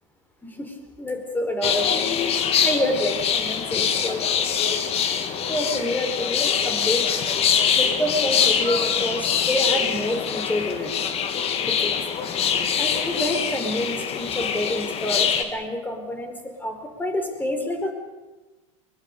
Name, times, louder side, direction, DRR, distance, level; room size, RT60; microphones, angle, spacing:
voice 1, 0.4-2.0 2.6-4.2 5.5-7.1 7.8-10.9 11.6-12.0 12.3-17.9, left 1 dB, 10° left, 5 dB, 4.7 m, -28 dB
sound 1, 1.6-15.4, left 7 dB, 35° left, 2.2 m, -24 dB
23.0 x 21.5 x 6.9 m, 1.2 s
hypercardioid pair, 95°, 16 cm